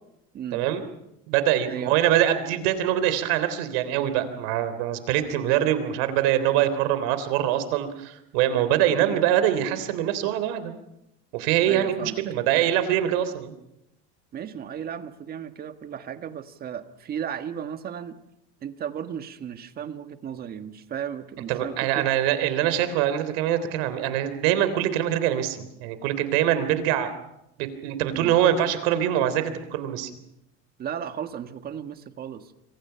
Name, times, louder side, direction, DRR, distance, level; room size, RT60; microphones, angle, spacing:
voice 1, 0.5-0.8 1.3-10.7 11.3-13.5 21.5-27.1 27.6-30.1, right 11 dB, 80° right, 12 dB, 3.4 m, -24 dB
voice 2, 11.7-12.2 14.3-18.2 18.6-22.1 28.1-28.3 30.8-32.5, right 8 dB, 30° right, 9 dB, 1.6 m, -35 dB
27.5 x 25.0 x 5.8 m, 0.84 s
cardioid pair, 155°, 30 cm